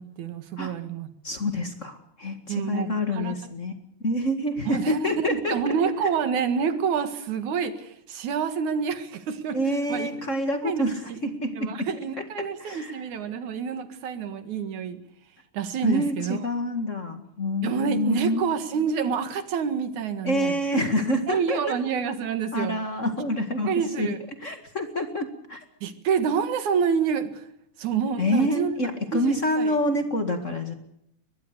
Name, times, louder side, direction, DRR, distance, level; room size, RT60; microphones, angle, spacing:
voice 1, 0.0-1.1 2.5-3.4 4.7-9.6 9.9-10.1 10.6-11.2 11.5-15.0 15.5-16.4 17.6-20.6 21.3-22.8 23.7-24.2 25.8-27.4 27.8-28.8 29.1-29.7, right 6 dB, 85° right, 10 dB, 3.1 m, -28 dB
voice 2, 1.2-3.7 4.0-5.7 9.5-11.9 12.2-12.3 12.6-13.0 15.8-18.4 20.2-21.8 22.5-23.7 24.0-24.1 24.4-25.6 28.2-30.7, left 1 dB, 30° left, 7 dB, 1.8 m, -27 dB
22.5 x 21.0 x 6.7 m, 0.76 s
omnidirectional pair, 3.3 m